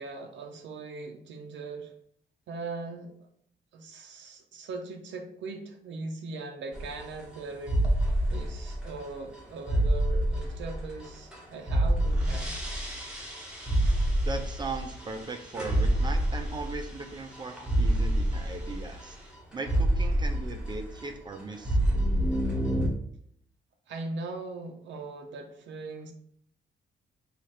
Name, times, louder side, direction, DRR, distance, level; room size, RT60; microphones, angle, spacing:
voice 1, 0.0-1.9 2.5-3.1 3.7-12.5 23.9-26.1, right 3 dB, 80° right, 3 dB, 0.5 m, -40 dB
sound 1, 6.7-7.4 7.7-11.4 11.7-21.0 21.3-22.9, right 1 dB, 5° right, 0.8 m, -27 dB
voice 2, 14.2-19.2 19.5-21.8, right 3 dB, 25° right, 5 dB, 0.4 m, -38 dB
3.1 x 2.4 x 4.3 m, 0.65 s
cardioid pair, 150°, 19 cm